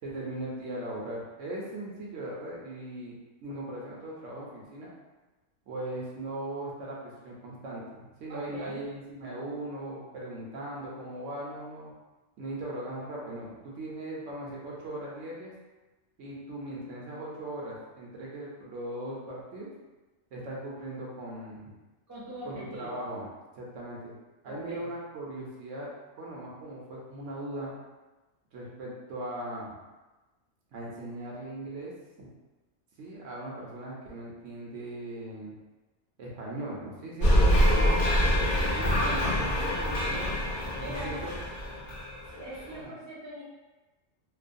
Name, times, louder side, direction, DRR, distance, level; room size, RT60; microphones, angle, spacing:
voice 1, 0.0-3.2 3.4-4.9 5.7-7.0 7.2-11.9 12.4-15.5 16.2-19.7 20.3-21.7 22.5-23.3 23.6-24.1 24.4-25.9 26.2-27.8 28.5-29.8 30.7-31.9 32.2-32.3 33.0-35.5 36.2-40.3 40.9-41.3 42.7-42.9, right 1 dB, 75° right, -4 dB, 1.0 m, -39 dB
voice 2, 8.3-8.8 22.1-23.0 24.4-24.8 39.0-39.2 40.8-41.2 42.3-43.4, right 1 dB, 15° right, -8 dB, 0.6 m, -41 dB
sound 1, 37.2-42.6, equal, 55° left, 0.8 m, -25 dB
3.0 x 2.0 x 2.5 m, 1.1 s
omnidirectional pair, 1.3 m